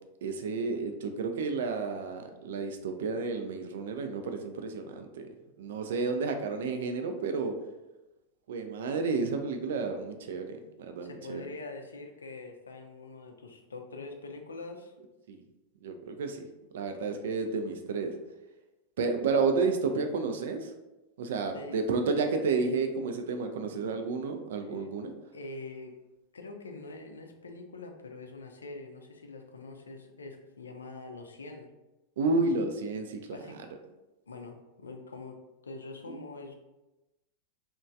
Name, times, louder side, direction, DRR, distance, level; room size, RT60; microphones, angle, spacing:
voice 1, 0.2-5.3 5.6-7.6 8.5-10.5 10.8-11.4 15.3-15.4 15.8-16.5 16.7-18.1 19.0-20.7 21.2-25.1 32.2-33.4 36.1-36.2, right 4 dB, 60° right, 5 dB, 0.3 m, -31 dB
voice 2, 11.0-14.9 21.5-21.8 24.7-24.9 25.3-25.9 26.3-31.7 33.3-33.6 33.8-33.9 34.3-35.4 35.6-36.5, left 3 dB, 70° left, 3 dB, 0.3 m, -44 dB
3.0 x 2.1 x 2.5 m, 1.0 s
figure-of-eight pair, 90°, 0 cm